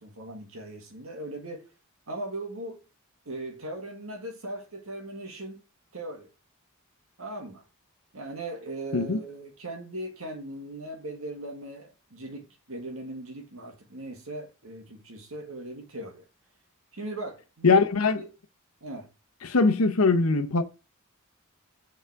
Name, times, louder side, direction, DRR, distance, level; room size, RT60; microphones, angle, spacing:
voice 1, 0.0-1.7 2.1-2.8 3.3-5.6 5.9-6.3 7.2-7.6 8.1-16.2 16.9-17.9 18.1-18.3 18.8-19.1, right 1 dB, 75° right, 1.7 m, -39 dB
voice 2, 17.6-18.2 19.4-20.6, left 4 dB, 90° left, 0.8 m, -21 dB
6.7 x 4.0 x 4.7 m
head